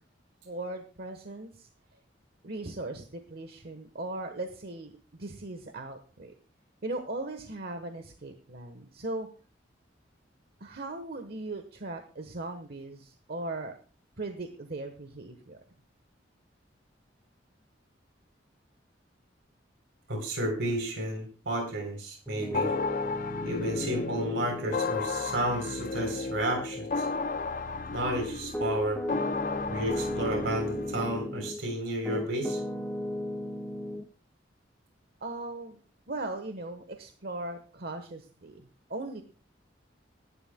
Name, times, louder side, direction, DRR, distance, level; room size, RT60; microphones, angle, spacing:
voice 1, 0.4-2.0 2.4-6.3 6.8-9.3 10.6-13.7 14.2-15.6 23.4-23.8 35.2-35.8 36.1-39.2, right 2 dB, 55° right, 7 dB, 1.2 m, -38 dB
voice 2, 20.1-22.7 23.4-27.1 27.9-29.0 29.7-32.6, right 1 dB, 75° right, 3 dB, 3.6 m, -32 dB
Piano, 22.3-31.6 32.0-34.0, left 1 dB, 5° left, 1.3 m, -37 dB
sound 1, 22.5-31.3, left 4 dB, 45° left, 0.5 m, -34 dB
25.0 x 11.0 x 2.2 m, 0.36 s
head